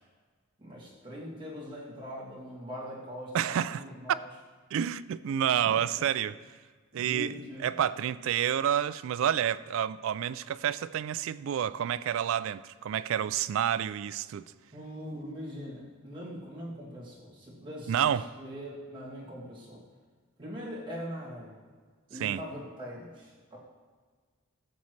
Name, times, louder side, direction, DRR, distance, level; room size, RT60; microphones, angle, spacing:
voice 1, 0.6-4.3 5.6-6.0 6.9-7.7 14.7-19.8 20.4-21.6 22.1-23.6, equal, 25° right, 2.5 m, -42 dB
voice 2, 3.3-3.8 4.7-6.3 6.9-7.3 7.6-14.5 17.9-18.3 22.2-22.4, right 9 dB, 70° right, 0.3 m, -29 dB
14.5 x 7.1 x 3.2 m
head